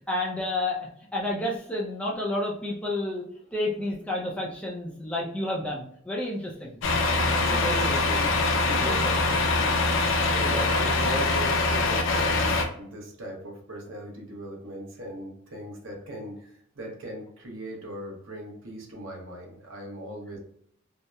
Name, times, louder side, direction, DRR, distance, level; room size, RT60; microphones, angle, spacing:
voice 1, 0.1-3.2 3.5-6.8 7.1-8.0 8.8-9.0 10.2-10.6 11.1-11.2, left 1 dB, 5° left, -3 dB, 0.4 m, -31 dB
Truck, 6.8-12.7, left 3 dB, 65° left, 0.4 m, -24 dB
voice 2, 7.3-9.4 10.4-20.4, equal, 65° right, -1 dB, 0.8 m, -38 dB
2.8 x 2.0 x 2.2 m, 0.66 s
head